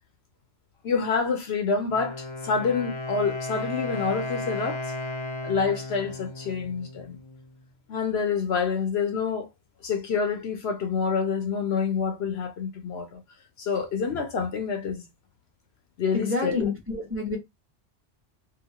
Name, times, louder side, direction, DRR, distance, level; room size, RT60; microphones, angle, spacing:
voice 1, 0.8-4.8 5.4-7.2 7.9-9.5 9.8-13.2 13.6-15.0 16.0-16.7, left 5 dB, 65° left, 0.9 m, -27 dB
Wind instrument woodwind instrument, 1.8-7.6, left 1 dB, 35° left, 0.5 m, -35 dB
voice 2, 16.1-17.4, left 3 dB, 10° right, 1.2 m, -28 dB
2.8 x 2.8 x 2.8 m
omnidirectional pair, 1.2 m